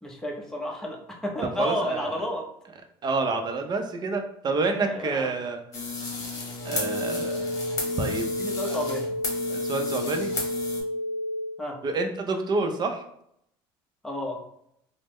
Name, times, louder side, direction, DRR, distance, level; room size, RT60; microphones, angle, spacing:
voice 1, 0.0-2.4 4.8-5.3 8.4-9.2 11.6-11.8 14.0-14.4, left 1 dB, 5° left, -1 dB, 0.8 m, -31 dB
voice 2, 1.4-2.2 3.0-5.6 6.6-7.6 8.0-8.3 8.7-8.8 9.5-10.3 11.8-13.0, right 3 dB, 35° right, 5 dB, 0.6 m, -28 dB
sound 1, 5.7-10.8, left 3 dB, 30° left, 1.2 m, -34 dB
sound 2, 6.6-11.6, left 1 dB, 60° left, 0.7 m, -31 dB
3.3 x 2.1 x 3.1 m, 0.72 s
supercardioid pair, 90°, 12 cm